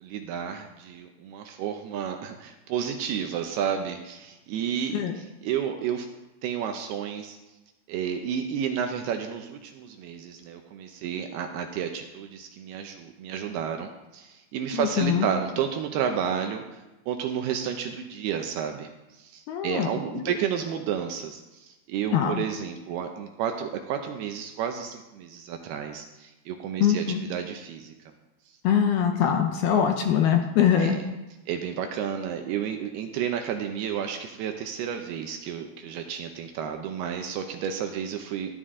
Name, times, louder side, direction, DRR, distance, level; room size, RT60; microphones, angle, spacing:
voice 1, 0.0-6.1 6.4-7.4 7.9-16.8 17.1-18.9 19.2-27.9 30.8-31.1 31.5-38.5, right 8 dB, 80° right, 5 dB, 2.4 m, -31 dB
voice 2, 14.7-15.3 19.5-19.9 20.2-20.3 22.1-22.4 26.8-27.2 28.6-31.0, left 8 dB, 75° left, 4 dB, 2.4 m, -23 dB
14.0 x 11.0 x 3.7 m, 1.1 s
omnidirectional pair, 5.1 m